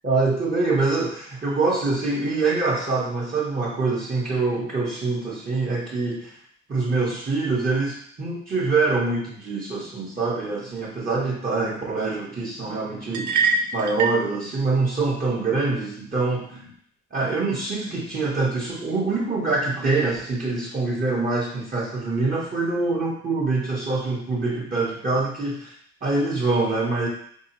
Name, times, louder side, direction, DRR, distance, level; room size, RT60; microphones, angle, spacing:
voice 1, 0.0-6.3 6.7-16.7 17.1-25.7 26.0-27.1, right 3 dB, 30° right, -5 dB, 0.8 m, -25 dB
sound 1, 13.1-14.3, right 4 dB, 70° right, 0.5 m, -23 dB
3.8 x 2.7 x 2.8 m, 0.64 s
cardioid pair, 90°, 30 cm